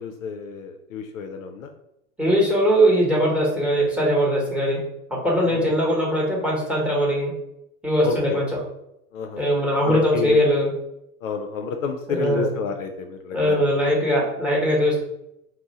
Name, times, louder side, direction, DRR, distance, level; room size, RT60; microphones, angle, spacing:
voice 1, 0.0-1.7 5.5-5.8 8.0-8.4 9.1-9.4 9.9-10.4 11.2-13.7, left 6 dB, 60° left, 5 dB, 0.5 m, -30 dB
voice 2, 2.2-4.8 5.1-7.3 7.8-8.5 9.4-10.7 12.1-12.5 13.3-15.1, equal, ahead, -3 dB, 0.9 m, -21 dB
2.7 x 2.1 x 3.9 m, 0.82 s
hypercardioid pair, 100°, 45 cm